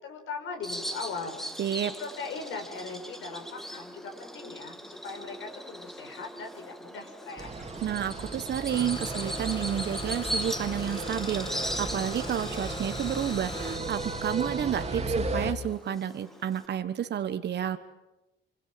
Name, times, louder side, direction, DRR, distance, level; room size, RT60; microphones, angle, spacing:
voice 1, 0.0-1.5 2.0-4.8 5.0-7.5, left 4 dB, 80° left, 4 dB, 6.2 m, -39 dB
Bird vocalization bird call bird song, 0.6-16.7, equal, ahead, 1.7 m, -40 dB
voice 2, 1.6-1.9 7.8-17.8, right 9 dB, 60° right, 9 dB, 1.3 m, -30 dB
sound 1, 7.4-15.5, right 3 dB, 30° right, 2.6 m, -35 dB
Engine starting, 8.7-13.8, left 2 dB, 25° left, 5.4 m, -40 dB
27.5 x 25.5 x 7.7 m, 1.0 s
cardioid pair, 90°, 20 cm